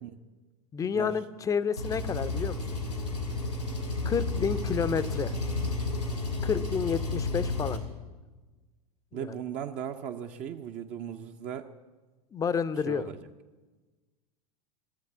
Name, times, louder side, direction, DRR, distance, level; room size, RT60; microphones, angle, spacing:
voice 1, 0.7-2.8 4.0-5.3 6.4-7.8 9.1-9.3 12.3-13.1, left 6 dB, 15° left, 13 dB, 0.6 m, -30 dB
Engine, 1.8-7.8, left 3 dB, 90° left, 2.5 m, -31 dB
voice 2, 9.1-11.7 12.9-13.1, right 9 dB, 35° right, 5 dB, 0.7 m, -37 dB
15.0 x 7.9 x 8.4 m, 1.3 s
figure-of-eight pair, 85°, 20 cm